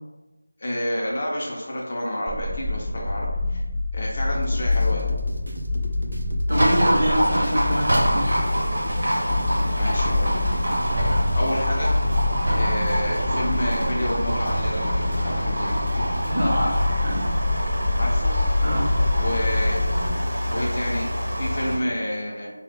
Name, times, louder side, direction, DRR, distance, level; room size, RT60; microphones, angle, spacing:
voice 1, 0.6-3.6 3.9-5.1 9.8-10.4 10.7-11.9 12.6-15.8 17.9-18.4 19.2-19.8 20.5-22.5, left 1 dB, 30° left, -3 dB, 0.4 m, -29 dB
sound 1, 2.3-20.1, left 2 dB, 75° left, 0.6 m, -26 dB
sound 2, 4.3-16.3, equal, 85° right, 0.4 m, -32 dB
voice 2, 6.5-8.3 16.3-17.3 18.6-18.9, equal, 35° right, -5 dB, 0.6 m, -25 dB
Livestock farm animals working animals, 6.5-21.8, equal, 55° right, 0.9 m, -26 dB
2.1 x 2.0 x 3.2 m, 1.1 s
figure-of-eight pair, 175°, 0 cm